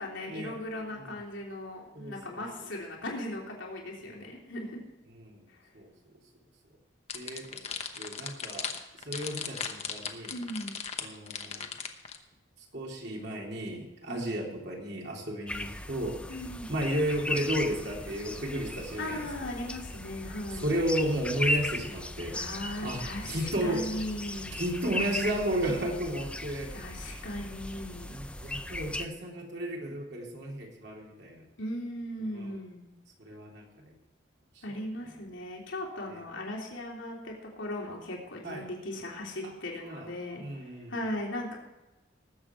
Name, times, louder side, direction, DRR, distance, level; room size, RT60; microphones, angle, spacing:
voice 1, 0.0-4.8 5.5-5.6 10.3-10.7 14.1-14.4 16.3-16.7 19.0-20.7 22.3-24.6 26.7-28.1 31.6-32.8 34.6-41.6, left 1 dB, 85° left, -2 dB, 3.2 m, -38 dB
voice 2, 1.9-2.4 4.0-4.2 5.1-5.4 5.7-5.9 7.1-8.7 9.0-10.3 11.0-11.7 12.7-16.2 16.7-19.3 20.6-22.4 22.8-24.0 24.6-26.7 27.0-27.2 28.1-31.4 32.3-32.5 33.2-33.9 36.1-36.2 38.4-38.6 39.4-39.5 39.8-40.1 40.4-40.9, right 1 dB, 60° right, -1 dB, 3.2 m, -33 dB
sound 1, 7.1-12.2, left 7 dB, 35° left, 1.0 m, -37 dB
sound 2, 15.5-29.1, left 1 dB, 5° left, 0.5 m, -37 dB
19.5 x 7.9 x 4.5 m, 1.0 s
head